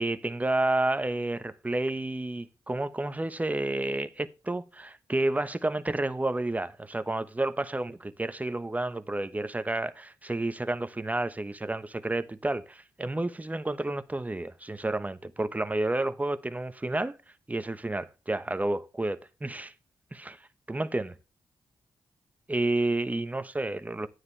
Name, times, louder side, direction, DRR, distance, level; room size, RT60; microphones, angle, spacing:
voice 1, 0.0-17.2 17.5-19.7 20.1-20.4 20.7-21.1 22.5-24.1, right 2 dB, 15° right, 0.9 m, -30 dB
9.6 x 9.3 x 3.3 m
cardioid pair, 80°, 9 cm